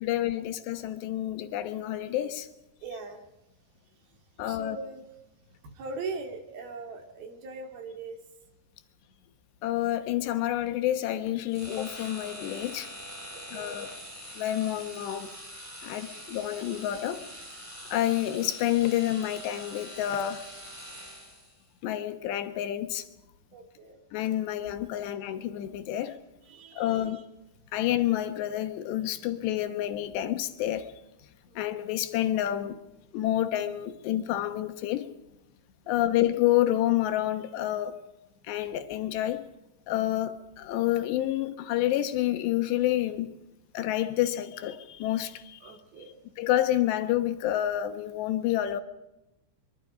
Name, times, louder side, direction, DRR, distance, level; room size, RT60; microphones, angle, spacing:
voice 1, 0.0-2.5 4.4-4.8 9.6-12.9 13.5-13.9 14.4-15.3 15.8-17.2 17.9-20.5 21.8-23.0 24.1-26.2 26.8-27.2 27.7-30.9 31.6-32.8 33.1-35.1 35.9-38.0 38.5-39.4 39.9-43.3 43.7-45.7 46.4-48.8, left 13 dB, 70° left, 3.2 m, -28 dB
voice 2, 2.8-3.2 4.4-5.0 5.7-8.2 13.3-13.8 23.5-24.0 26.4-27.2 31.5-31.6 36.1-36.2 45.6-46.2, right 3 dB, 55° right, 3.7 m, -40 dB
sound 1, 11.5-21.6, equal, 10° right, 2.3 m, -44 dB
24.0 x 23.5 x 5.0 m
omnidirectional pair, 5.5 m